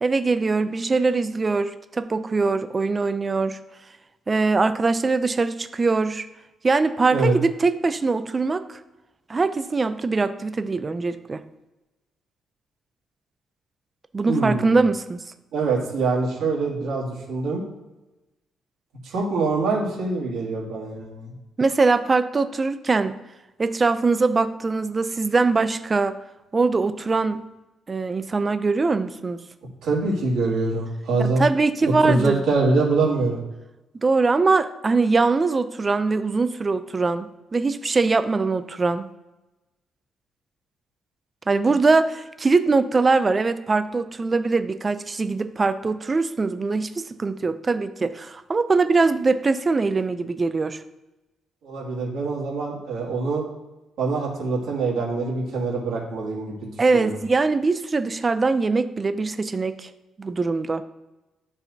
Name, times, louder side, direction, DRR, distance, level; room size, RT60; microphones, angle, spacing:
voice 1, 0.0-3.6 4.3-6.3 6.6-8.8 9.3-11.4 14.1-15.2 21.6-23.1 23.6-26.2 26.5-27.4 27.9-29.4 31.2-32.4 33.9-39.1 41.5-50.8 56.8-59.9 60.2-60.8, right 3 dB, 20° right, 11 dB, 0.3 m, -22 dB
voice 2, 14.3-14.8 15.5-17.6 19.0-21.3 29.8-31.4 32.0-33.4 41.7-41.8 51.6-53.4 54.0-57.1, right 3 dB, 75° right, -4 dB, 2.2 m, -24 dB
12.0 x 4.3 x 2.7 m, 1.0 s
cardioid pair, 165°, 0 cm